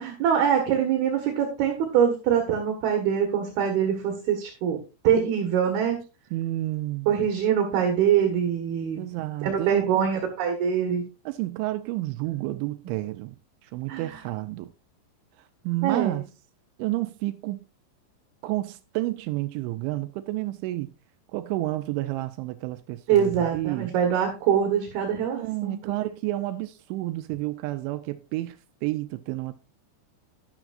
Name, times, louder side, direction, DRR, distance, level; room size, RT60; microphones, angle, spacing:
voice 1, 0.0-4.8 5.0-6.0 7.1-9.0 9.4-11.0 13.9-14.2 15.8-16.2 23.1-25.9, right 8 dB, 65° right, 3.1 m, -24 dB
voice 2, 6.3-7.1 9.0-10.1 11.3-13.4 13.6-14.7 15.6-16.2 16.8-17.6 18.4-20.9 21.3-23.9 25.3-29.5, right 17 dB, 85° right, 3.0 m, -30 dB
12.0 x 10.5 x 2.5 m
omnidirectional pair, 5.4 m